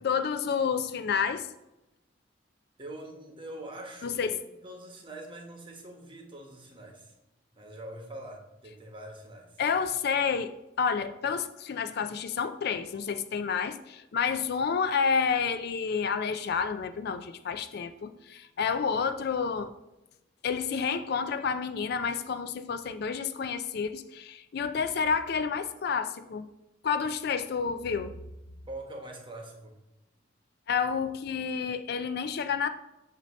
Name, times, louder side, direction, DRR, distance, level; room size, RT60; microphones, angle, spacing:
voice 1, 0.0-1.5 4.0-4.4 9.6-19.7 20.4-26.5 26.8-28.1 30.7-32.7, left 6 dB, 60° left, 11 dB, 0.4 m, -29 dB
voice 2, 2.8-7.1 7.5-9.6 28.7-29.8, right 1 dB, 25° right, 2 dB, 1.1 m, -44 dB
8.2 x 2.8 x 6.2 m, 0.94 s
head